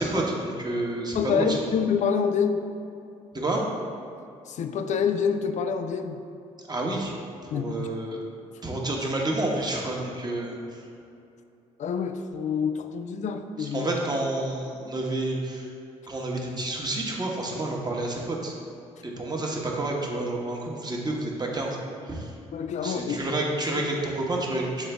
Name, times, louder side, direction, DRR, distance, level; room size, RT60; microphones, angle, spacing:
voice 1, 0.0-1.6 3.3-3.6 6.7-7.1 7.4-8.2 8.6-10.8 13.6-15.7 16.1-18.5 19.0-21.8 22.1-22.3 22.8-24.9, right 2 dB, 25° right, -1 dB, 1.3 m, -29 dB
voice 2, 1.1-2.6 4.5-6.2 7.5-7.9 11.8-13.9 22.5-23.2, left 6 dB, 50° left, 8 dB, 0.5 m, -27 dB
7.3 x 3.8 x 3.4 m, 2.6 s
hypercardioid pair, 50°, 16 cm